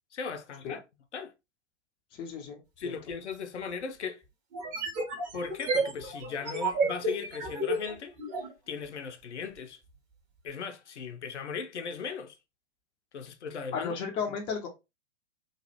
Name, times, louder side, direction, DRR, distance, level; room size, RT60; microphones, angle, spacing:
voice 1, 0.1-0.8 1.1-1.3 2.8-4.2 5.3-8.2 8.7-9.8 10.4-12.4 13.1-14.0, left 5 dB, 70° left, 0.6 m, -37 dB
voice 2, 2.1-2.9 13.7-14.7, left 6 dB, 15° left, 0.4 m, -34 dB
sound 1, 3.1-3.2 4.5-8.5, right 2 dB, 35° right, 1.4 m, -31 dB
3.1 x 2.3 x 2.7 m
figure-of-eight pair, 100°, 37 cm